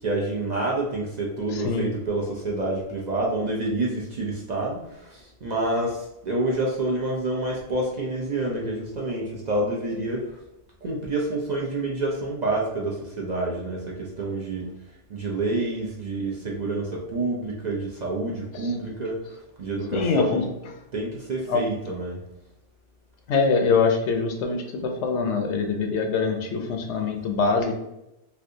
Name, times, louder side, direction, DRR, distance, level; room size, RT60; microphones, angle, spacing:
voice 1, 0.0-10.4 10.8-14.7 15.1-20.5 20.9-22.2, right 2 dB, 50° right, -2 dB, 0.6 m, -28 dB
voice 2, 1.5-1.8 18.6-18.7 19.9-20.5 21.5-21.6 23.3-27.8, left 4 dB, 80° left, 4 dB, 0.9 m, -24 dB
3.3 x 2.7 x 2.6 m, 0.88 s
omnidirectional pair, 1.2 m